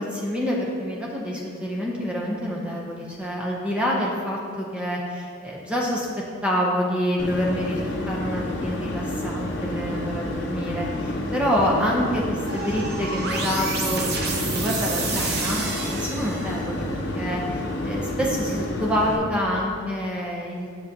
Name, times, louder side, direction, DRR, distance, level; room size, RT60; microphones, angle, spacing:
voice 1, 0.0-6.1 6.4-20.7, equal, 5° right, -3 dB, 0.6 m, -27 dB
sound 1, 7.2-19.2, left 1 dB, 55° left, 0.8 m, -30 dB
sound 2, 12.5-16.8, right 3 dB, 55° right, 0.8 m, -29 dB
7.4 x 6.4 x 2.8 m, 2.3 s
head